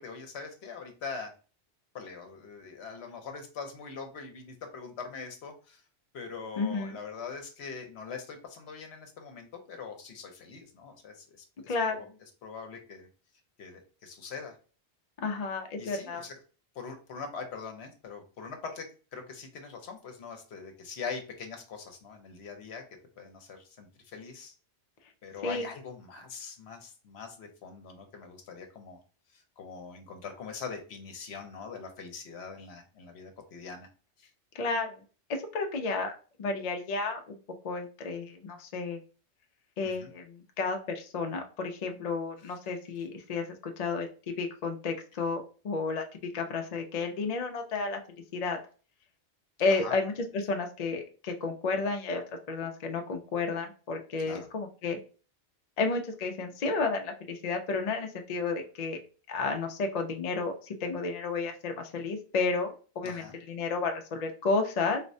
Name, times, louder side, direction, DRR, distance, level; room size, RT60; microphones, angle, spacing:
voice 1, 0.0-1.3 1.9-5.8 6.1-11.3 11.6-12.1 12.4-13.1 13.6-14.6 15.8-16.4 16.7-18.9 19.1-22.9 23.2-24.5 25.2-29.0 29.3-33.9 34.2-34.3 39.8-40.1 49.7-49.9 54.2-54.5 63.0-63.4, left 5 dB, 70° left, 5 dB, 1.0 m, -42 dB
voice 2, 6.6-7.0 11.7-12.0 15.2-16.2 25.4-25.7 34.5-35.0 35.3-36.1 36.4-37.4 37.6-39.0 39.8-46.0 46.3-48.0 48.3-48.6 49.6-55.0 55.8-59.0 59.3-65.0, left 4 dB, 50° left, 4 dB, 0.5 m, -32 dB
4.0 x 2.1 x 2.5 m, 0.36 s
omnidirectional pair, 1.2 m